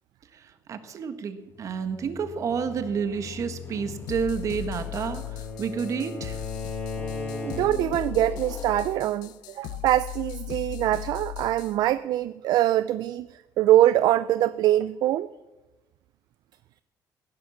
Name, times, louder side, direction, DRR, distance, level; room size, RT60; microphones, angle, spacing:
voice 1, 0.7-6.4, right 6 dB, 50° right, 1.6 m, -30 dB
sound 1, 1.5-6.3 6.9-9.1, left 5 dB, 35° left, 1.2 m, -43 dB
sound 2, 4.1-11.8, left 14 dB, 85° left, 0.7 m, -37 dB
Bowed string instrument, 4.1-8.0, left 2 dB, 15° left, 4.7 m, -37 dB
voice 2, 7.4-13.3 13.6-15.3, right 13 dB, 70° right, 0.4 m, -23 dB
16.0 x 10.5 x 7.2 m
cardioid pair, 115°, 7 cm